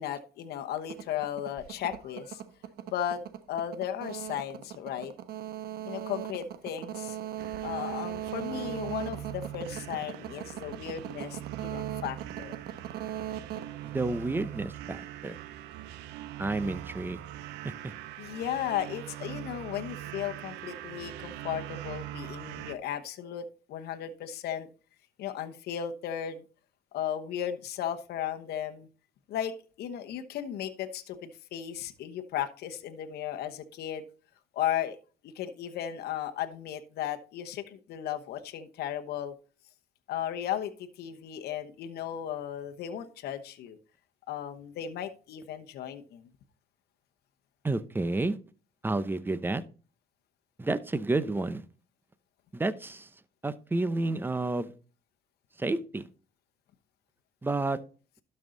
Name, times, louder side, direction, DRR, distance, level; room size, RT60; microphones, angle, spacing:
voice 1, 0.0-2.4 2.9-3.2 3.5-5.1 5.8-7.2 7.6-12.5 18.2-24.7 25.2-26.4 26.9-28.9 29.3-34.0 34.5-35.0 35.2-39.3 40.1-43.8 44.3-46.2, left 10 dB, 70° left, 7 dB, 1.0 m, -35 dB
sound 1, 0.8-14.6, right 11 dB, 70° right, 1.1 m, -39 dB
sound 2, 7.4-22.8, right 13 dB, 90° right, 0.7 m, -42 dB
voice 2, 13.8-15.3 16.4-17.2 17.6-17.7 47.6-48.4 48.8-49.6 50.6-51.6 52.5-53.1 53.4-54.7 55.6-56.1 57.4-57.8, right 2 dB, 10° right, 15 dB, 0.7 m, -30 dB
12.0 x 5.5 x 3.9 m, 0.36 s
cardioid pair, 110°, 17 cm